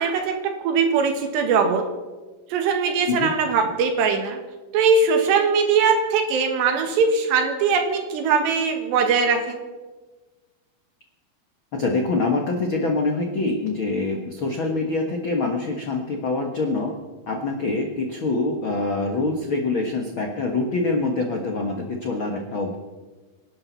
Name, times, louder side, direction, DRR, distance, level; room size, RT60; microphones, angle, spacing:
voice 1, 0.0-1.9 2.5-4.4 4.7-9.6, right 5 dB, 80° right, 5 dB, 3.8 m, -21 dB
voice 2, 11.7-16.9 17.3-22.7, left 3 dB, 75° left, 2 dB, 1.1 m, -25 dB
26.5 x 12.0 x 4.1 m, 1.3 s
omnidirectional pair, 4.8 m